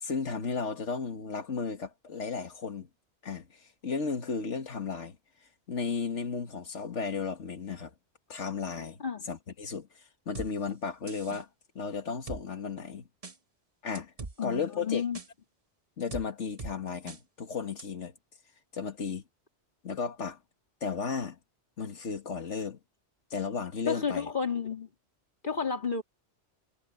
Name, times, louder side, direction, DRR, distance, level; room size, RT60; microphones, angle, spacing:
voice 1, 0.0-2.9 3.2-5.2 5.7-7.9 8.3-9.0 9.3-9.9 10.3-11.5 11.8-13.1 13.8-14.1 14.4-15.0 16.0-18.1 18.7-19.2 19.8-20.4 20.8-21.4 21.8-22.8 23.3-24.3, left 5 dB, 85° left, 2.0 m, -34 dB
sound 1, 10.3-10.5 11.1-11.4 12.3-12.4 13.2-13.4 13.9-14.3 15.1-15.3 16.1-16.2 16.6-16.7 17.1-17.2 17.8-17.9, right 3 dB, 30° right, 1.2 m, -40 dB
voice 2, 14.4-15.2 23.9-24.9 25.4-26.0, left 6 dB, 45° left, 2.6 m, -31 dB
omnidirectional pair, 1.2 m